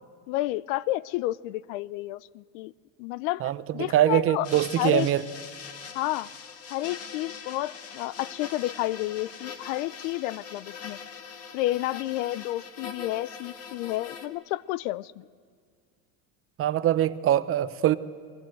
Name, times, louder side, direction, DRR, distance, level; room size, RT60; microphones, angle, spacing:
voice 1, 0.3-2.7 3.0-4.5 4.8-5.1 5.9-6.3 6.7-11.0 11.5-15.3, left 17 dB, 65° left, 21 dB, 0.6 m, -30 dB
voice 2, 3.4-5.2 16.6-18.0, right 12 dB, 30° right, 13 dB, 0.7 m, -23 dB
sound 1, 4.4-14.3, left 6 dB, 35° left, 1.9 m, -42 dB
29.0 x 21.5 x 7.8 m, 2.1 s
supercardioid pair, 130°, 42 cm